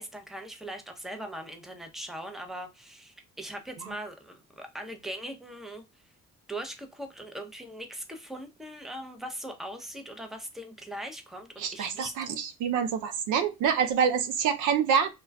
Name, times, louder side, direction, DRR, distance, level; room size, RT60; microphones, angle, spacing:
voice 1, 0.0-5.8 6.5-12.1, right 1 dB, ahead, 0.6 m, -40 dB
voice 2, 11.6-15.1, right 7 dB, 85° right, 0.5 m, -26 dB
2.2 x 2.2 x 3.3 m
cardioid pair, 90°, 30 cm